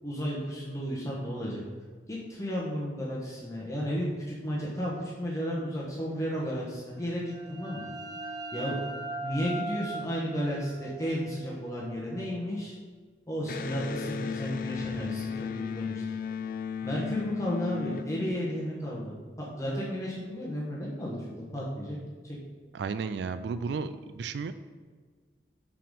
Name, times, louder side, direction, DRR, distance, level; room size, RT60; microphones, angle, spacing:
voice 1, 0.0-1.6 2.1-7.9 8.5-8.8 9.2-12.7 13.3-16.2 16.8-22.0 22.2-22.4, equal, 15° left, -5 dB, 1.1 m, -33 dB
sound 1, 7.0-12.5, right 2 dB, 20° right, 0.9 m, -40 dB
Electric guitar, 13.4-18.9, left 6 dB, 50° left, 0.3 m, -35 dB
voice 2, 22.7-24.5, right 5 dB, 70° right, 11 dB, 0.3 m, -33 dB
5.8 x 5.0 x 5.2 m, 1.6 s
head